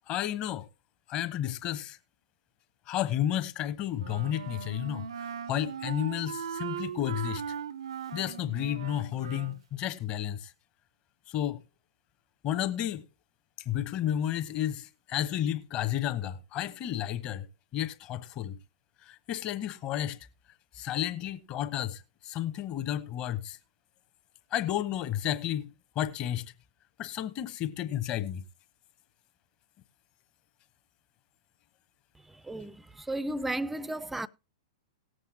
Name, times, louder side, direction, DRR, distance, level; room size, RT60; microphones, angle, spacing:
voice 1, 0.1-0.7 1.1-2.0 2.9-7.5 8.1-10.5 11.3-11.6 12.4-13.0 13.6-17.5 17.7-18.6 19.0-20.3 20.7-23.6 24.5-26.5 27.0-28.4, left 11 dB, 30° left, 1.0 m, -32 dB
Wind instrument woodwind instrument, 4.0-9.6, right 8 dB, 60° right, 0.5 m, -38 dB
voice 2, 32.1-34.3, right 1 dB, 5° right, 0.5 m, -34 dB
18.5 x 7.8 x 2.8 m
figure-of-eight pair, 105°, 3 cm